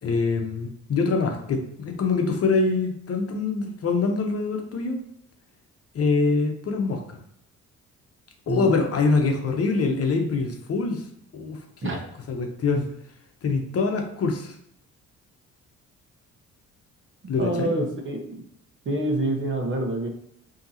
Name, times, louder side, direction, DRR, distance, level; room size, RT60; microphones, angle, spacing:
voice 1, 0.0-5.0 5.9-7.2 8.5-11.0 11.3-12.0 12.3-12.9 13.4-14.5 17.3-17.7, left 4 dB, 50° left, 4 dB, 0.9 m, -24 dB
voice 2, 8.5-8.8 11.8-12.0 17.4-18.4 18.8-20.1, right 1 dB, 40° right, 3 dB, 1.0 m, -27 dB
5.4 x 2.9 x 2.8 m, 0.71 s
cardioid pair, 90°, 30 cm